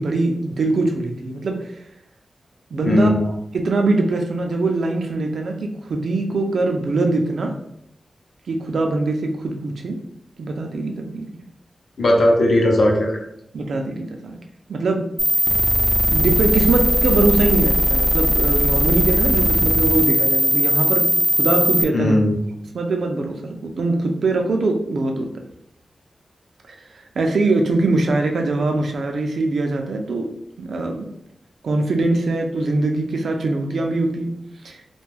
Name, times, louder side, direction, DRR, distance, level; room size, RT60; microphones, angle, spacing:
voice 1, 0.0-1.8 2.7-7.5 8.5-10.0 10.4-11.3 13.5-14.4 14.7-15.1 16.1-21.1 21.4-22.2 22.6-25.3 26.7-26.8 27.2-30.3 30.6-31.1 31.6-34.3 34.6-34.8, right 2 dB, 70° right, 3 dB, 0.4 m, -22 dB
voice 2, 2.8-3.3 12.0-13.2 21.9-22.4, left 1 dB, 60° left, 0 dB, 0.6 m, -17 dB
sound 1, 15.2-21.8, equal, ahead, 0.4 m, -18 dB
2.5 x 2.2 x 3.3 m, 0.75 s
wide cardioid pair, 175°, 0 cm